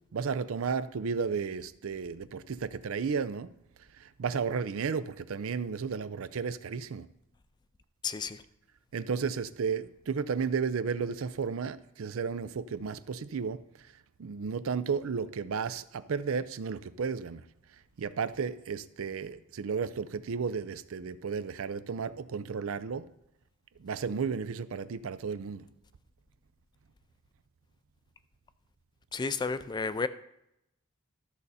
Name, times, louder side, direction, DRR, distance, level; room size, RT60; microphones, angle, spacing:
voice 1, 0.1-3.5 4.0-7.1 8.9-13.6 14.2-17.4 18.0-23.1 23.8-25.6, right 5 dB, 65° right, 0.4 m, -33 dB
voice 2, 8.0-8.4 29.1-30.1, left 4 dB, 20° left, 0.3 m, -32 dB
13.0 x 6.6 x 4.1 m
head